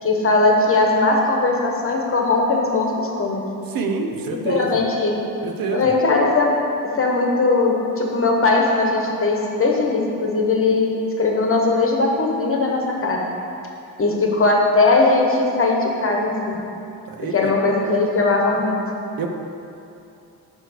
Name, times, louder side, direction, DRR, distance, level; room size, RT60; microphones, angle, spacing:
voice 1, 0.0-3.4 4.3-5.1 5.7-6.5 7.0-13.2 14.0-16.6 17.3-18.7, left 3 dB, 35° left, 0 dB, 1.2 m, -19 dB
voice 2, 3.7-4.8 5.4-5.9 17.1-17.4 19.2-19.3, right 4 dB, 65° right, 4 dB, 0.8 m, -26 dB
9.6 x 3.2 x 6.4 m, 2.7 s
cardioid pair, 120°, 37 cm